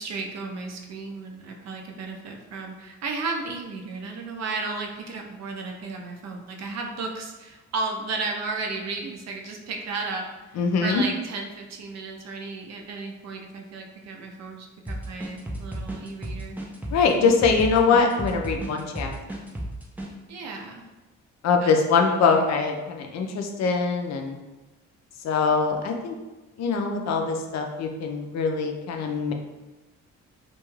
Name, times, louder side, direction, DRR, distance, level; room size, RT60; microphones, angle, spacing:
voice 1, 0.0-10.3 10.8-16.6 20.3-20.8 21.6-21.7 22.0-22.4, right 3 dB, 60° right, 2 dB, 0.5 m, -34 dB
voice 2, 10.6-11.0 16.9-19.1 21.4-24.4 25.2-26.1 26.6-29.3, left 5 dB, 60° left, 3 dB, 0.5 m, -23 dB
sound 1, 14.9-20.1, right 1 dB, 5° right, 0.4 m, -33 dB
2.3 x 2.3 x 3.1 m, 1.2 s
cardioid pair, 90°, 30 cm